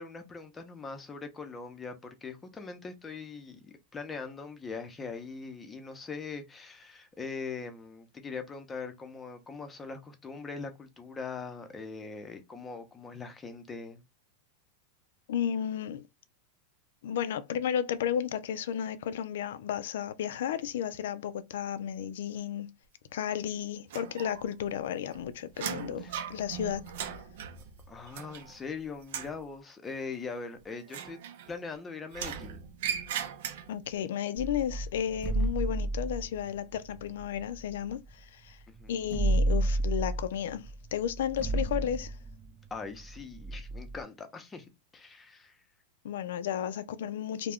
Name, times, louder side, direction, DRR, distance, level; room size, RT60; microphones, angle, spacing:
voice 1, 0.0-14.0 26.0-26.1 27.9-31.2 31.5-32.6 38.7-38.9 42.7-44.7 44.9-45.6, left 4 dB, 15° left, 0.6 m, -41 dB
voice 2, 15.3-16.0 17.0-22.7 23.1-26.9 33.7-38.6 38.9-42.2 46.0-47.5, left 9 dB, 75° left, 0.3 m, -33 dB
sound 1, 23.9-24.7 25.0-28.7 29.0-29.4 30.8-31.7 32.1-33.9, right 8 dB, 70° right, 0.5 m, -38 dB
sound 2, 34.4-38.2 38.5-38.6 38.8-44.0, right 2 dB, 20° right, 0.6 m, -32 dB
2.3 x 2.1 x 3.5 m
hypercardioid pair, 125°, 0 cm